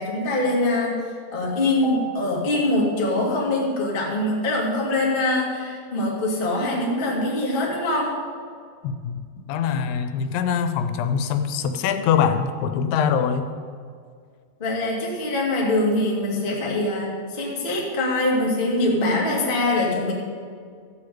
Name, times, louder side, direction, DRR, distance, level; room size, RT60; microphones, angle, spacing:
voice 1, 0.0-8.1 14.6-20.1, left 2 dB, 20° left, -4 dB, 1.4 m, -23 dB
voice 2, 8.8-9.2 9.5-13.5, left 7 dB, 85° left, 8 dB, 3.1 m, -23 dB
15.0 x 5.1 x 8.5 m, 2.1 s
omnidirectional pair, 5.1 m